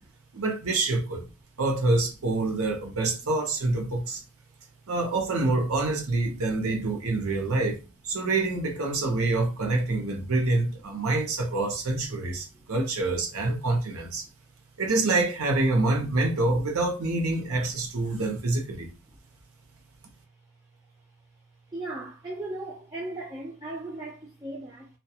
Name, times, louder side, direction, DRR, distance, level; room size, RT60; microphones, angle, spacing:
voice 1, 0.3-1.2 1.6-4.2 4.9-14.3 14.8-18.9, right 2 dB, 80° right, 0.7 m, -26 dB
voice 2, 21.7-24.9, right 2 dB, 20° right, 0.4 m, -37 dB
2.3 x 2.2 x 2.7 m
head